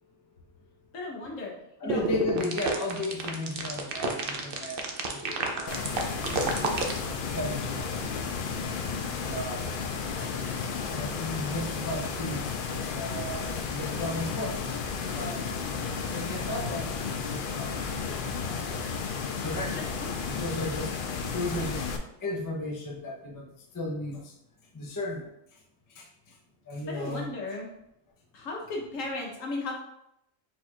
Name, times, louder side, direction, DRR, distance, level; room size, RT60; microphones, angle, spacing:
voice 1, 0.9-1.5 1.8-2.0 19.7-20.1 26.9-27.7 28.3-29.7, left 2 dB, 65° left, -1 dB, 1.3 m, -35 dB
voice 2, 1.8-4.8 5.1-5.9 6.4-7.8 8.5-8.6 9.1-9.6 10.8-14.6 15.1-15.4 16.0-18.6 19.4-20.9 21.3-21.8 22.2-23.5 23.7-24.3 24.7-25.3 26.0-26.1 26.7-27.3, left 1 dB, 20° left, -2 dB, 0.5 m, -35 dB
sound 1, 1.9-7.0, right 4 dB, 55° right, 0.6 m, -30 dB
sound 2, 5.7-22.0, left 5 dB, 90° left, 0.4 m, -33 dB
4.5 x 2.4 x 4.3 m, 0.79 s
omnidirectional pair, 1.5 m